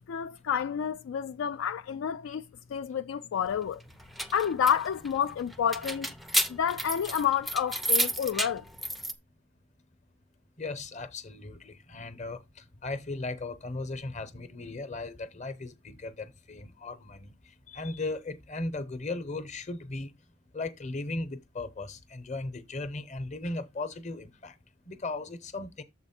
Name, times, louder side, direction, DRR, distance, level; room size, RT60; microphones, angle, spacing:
voice 1, 0.0-2.4 2.7-3.8 4.3-6.1 6.5-8.6, left 8 dB, 75° left, 0.3 m, -29 dB
sound 1, 3.9-9.1, right 1 dB, ahead, 0.4 m, -31 dB
voice 2, 10.6-17.3 17.7-20.1 20.5-24.5 24.9-25.8, left 2 dB, 35° left, 0.8 m, -37 dB
7.0 x 4.2 x 4.2 m
head